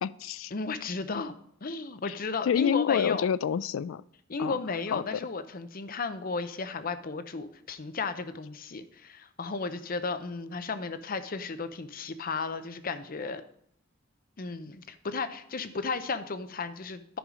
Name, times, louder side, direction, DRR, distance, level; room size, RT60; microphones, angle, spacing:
voice 1, 0.0-0.5 2.1-2.2 2.5-4.0 4.4-4.5 4.9-5.0, left 8 dB, 90° left, 19 dB, 0.3 m, -27 dB
voice 2, 0.5-1.3 1.6-3.3 4.3-13.4 14.4-17.2, left 4 dB, 50° left, 11 dB, 0.7 m, -34 dB
10.5 x 5.5 x 4.9 m, 0.69 s
head